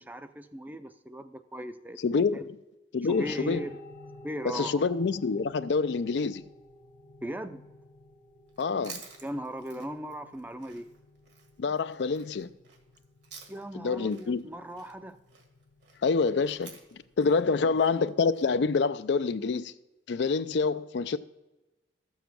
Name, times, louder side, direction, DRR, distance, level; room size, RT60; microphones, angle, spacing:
voice 1, 0.0-2.4 3.0-3.8 4.2-4.9 7.2-7.6 9.2-10.9 13.5-15.2 17.5-17.7, right 1 dB, 10° right, 0.5 m, -38 dB
voice 2, 2.0-2.6 2.9-3.6 4.5-6.4 8.6-9.0 11.6-12.5 13.8-14.4 16.0-19.7 20.1-21.2, left 4 dB, 65° left, 0.4 m, -27 dB
sound 1, 3.1-17.8, left 1 dB, 40° left, 0.9 m, -53 dB
Chewing mastication, 8.5-13.8 14.1-18.5, right 6 dB, 65° right, 1.8 m, -51 dB
13.5 x 7.2 x 6.0 m
head